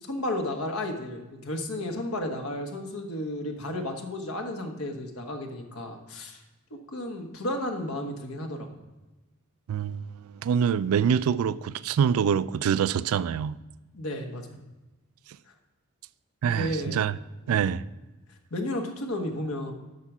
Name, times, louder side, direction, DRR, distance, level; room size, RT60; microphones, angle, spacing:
voice 1, 0.0-6.4 6.9-8.8 13.9-14.6 16.4-17.1 17.5-17.6 18.5-19.7, left 1 dB, 80° left, 1.3 m, -33 dB
voice 2, 9.7-10.1 10.4-13.6 16.4-17.1 17.5-17.8, right 7 dB, 80° right, 0.3 m, -25 dB
8.4 x 5.9 x 6.0 m
head